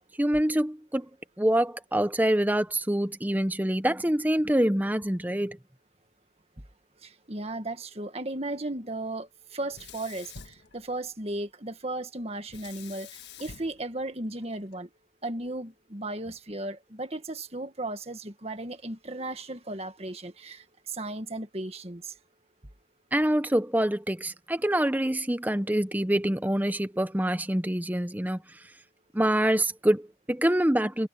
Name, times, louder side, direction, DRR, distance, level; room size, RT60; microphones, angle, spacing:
voice 1, 0.2-1.1 1.4-5.6 23.1-28.4 29.1-31.1, right 1 dB, 10° right, 0.8 m, -25 dB
voice 2, 7.0-13.1 13.4-14.9 15.2-22.1, right 2 dB, 35° right, 1.8 m, -35 dB
Sink (filling or washing), 9.7-11.4 12.5-14.8, left 6 dB, 70° left, 1.5 m, -48 dB
head